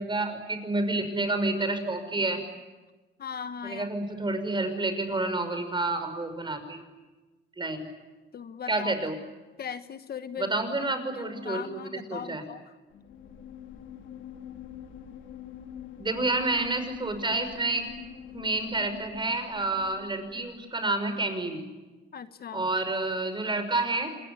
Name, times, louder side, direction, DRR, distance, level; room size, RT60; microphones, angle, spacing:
voice 1, 0.0-2.4 3.6-6.8 7.6-7.8 8.7-9.2 10.4-12.4 16.0-17.9 18.3-21.6 22.5-24.1, right 2 dB, 25° right, 8 dB, 5.9 m, -29 dB
voice 2, 3.2-3.9 8.3-8.9 9.6-10.5 11.1-12.6 22.1-22.7, left 7 dB, 50° left, 11 dB, 1.2 m, -38 dB
sound 1, 12.9-20.7, left 9 dB, 75° left, 3.3 m, -45 dB
27.5 x 21.5 x 9.8 m, 1.2 s
cardioid pair, 90°, 20 cm